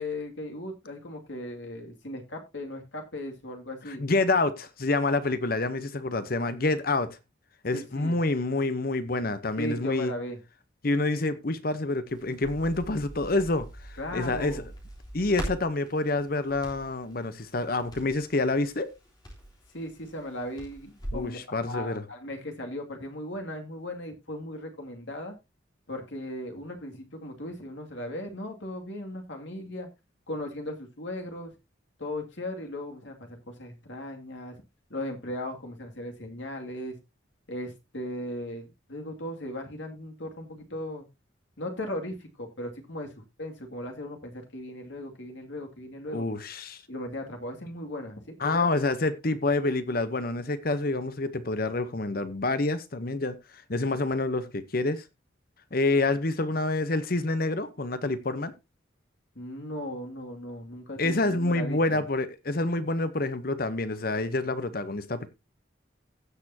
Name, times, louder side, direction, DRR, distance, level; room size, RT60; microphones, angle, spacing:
voice 1, 0.0-4.0 7.7-8.2 9.6-10.4 14.0-14.7 19.7-21.4 21.7-25.3 25.9-29.9 30.3-31.5 32.0-34.6 34.9-37.0 37.5-41.1 41.6-43.1 43.4-46.3 46.9-48.6 59.4-62.0, left 1 dB, 70° left, 2.3 m, -37 dB
voice 2, 3.9-7.2 7.6-10.1 10.8-13.7 14.1-14.6 15.1-18.9 21.1-22.0 46.1-46.8 48.4-53.3 53.7-55.0 55.7-58.5 61.0-65.3, left 2 dB, 50° left, 0.9 m, -27 dB
Crackle, 12.1-21.3, right 1 dB, 20° left, 3.5 m, -42 dB
16.0 x 6.8 x 2.8 m
head